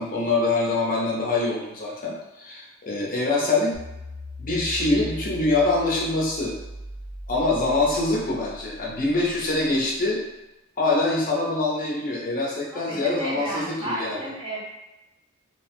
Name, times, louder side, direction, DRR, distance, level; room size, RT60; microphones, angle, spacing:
voice 1, 0.0-3.7 4.4-6.6 7.3-10.2 10.8-14.2, left 2 dB, 40° left, -4 dB, 0.7 m, -24 dB
sound 1, 3.7-10.0, left 1 dB, 5° left, 1.0 m, -39 dB
voice 2, 12.7-14.6, right 1 dB, 20° right, -6 dB, 0.7 m, -33 dB
2.8 x 2.1 x 2.9 m, 0.98 s
head